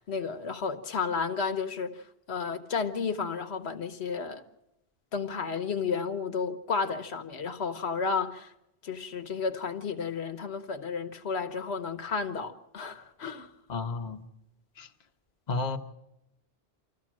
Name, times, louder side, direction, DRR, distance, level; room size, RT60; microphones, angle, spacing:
voice 1, 0.0-2.0 2.3-4.4 5.1-8.5 8.8-13.5, left 5 dB, 85° left, 1.3 m, -32 dB
voice 2, 13.7-14.2 14.8-14.9 15.5-15.8, left 3 dB, 45° left, 1.1 m, -32 dB
25.0 x 14.0 x 7.5 m
omnidirectional pair, 1.1 m